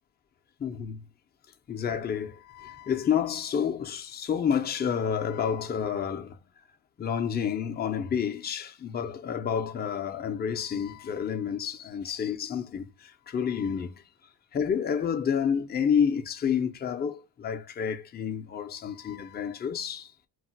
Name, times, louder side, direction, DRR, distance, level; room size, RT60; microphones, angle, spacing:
voice 1, 0.6-1.0 1.7-6.4 7.0-14.0 14.5-20.1, left 7 dB, 25° left, 0.4 m, -29 dB
2.3 x 2.1 x 3.9 m
cardioid pair, 80°, 45 cm